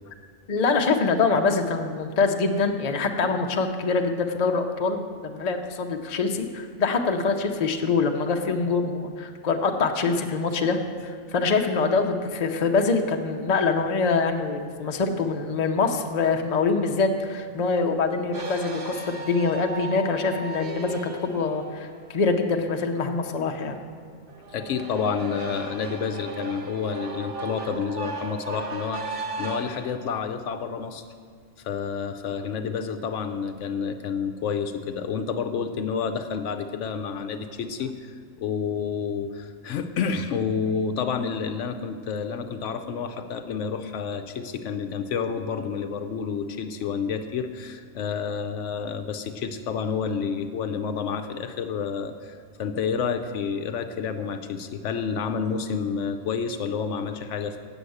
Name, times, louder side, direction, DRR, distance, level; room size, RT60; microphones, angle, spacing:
voice 1, 0.5-10.8 11.0-21.0 21.3-23.7, left 4 dB, 40° left, 4 dB, 0.7 m, -24 dB
sound 1, 18.3-22.4 24.3-29.9, right 3 dB, 50° right, 1.1 m, -36 dB
voice 2, 24.5-31.0 31.6-57.6, left 6 dB, 75° left, 8 dB, 0.9 m, -29 dB
8.2 x 7.1 x 7.7 m, 2.1 s
omnidirectional pair, 1.3 m